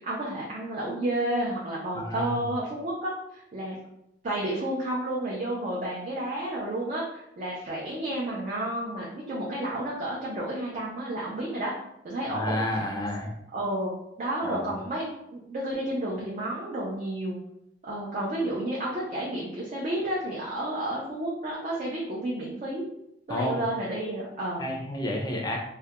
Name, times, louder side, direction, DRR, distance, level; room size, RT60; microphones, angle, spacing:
voice 1, 0.0-3.8 4.2-11.7 12.0-12.6 13.5-17.4 17.8-22.8 23.3-24.7, right 1 dB, 45° right, -5 dB, 0.4 m, -31 dB
voice 2, 1.9-2.4 12.3-13.3 14.4-14.7 23.3-23.6 24.6-25.6, left 1 dB, 25° left, 1 dB, 0.4 m, -30 dB
2.3 x 2.1 x 2.8 m, 0.81 s
head